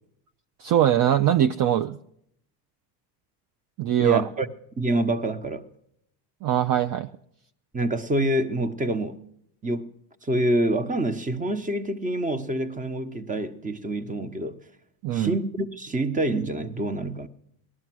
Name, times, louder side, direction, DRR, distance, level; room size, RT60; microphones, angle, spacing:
voice 1, 0.6-2.0 3.8-4.3 6.4-7.1 15.0-15.3, right 11 dB, 45° right, 0.6 m, -22 dB
voice 2, 4.0-4.5 4.8-5.6 7.7-9.2 9.6-9.9 10.2-14.6 15.1-17.3, right 1 dB, 15° right, 1.1 m, -26 dB
18.5 x 12.5 x 6.2 m
supercardioid pair, 90°, 50 cm